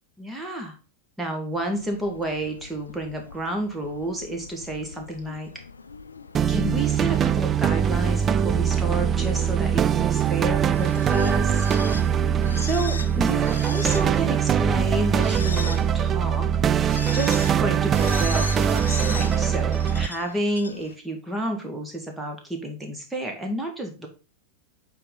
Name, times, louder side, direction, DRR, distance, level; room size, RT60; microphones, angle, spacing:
voice 1, 0.2-0.7 1.2-5.5 6.5-11.7 12.6-16.5 17.1-24.1, right 1 dB, 5° right, 2 dB, 1.8 m, -30 dB
sound 1, 1.5-21.0, left 4 dB, 75° left, 0.5 m, -40 dB
sound 2, 6.3-20.1, right 8 dB, 25° right, 0.3 m, -22 dB
8.8 x 4.0 x 3.9 m, 0.32 s
figure-of-eight pair, 90°, 0 cm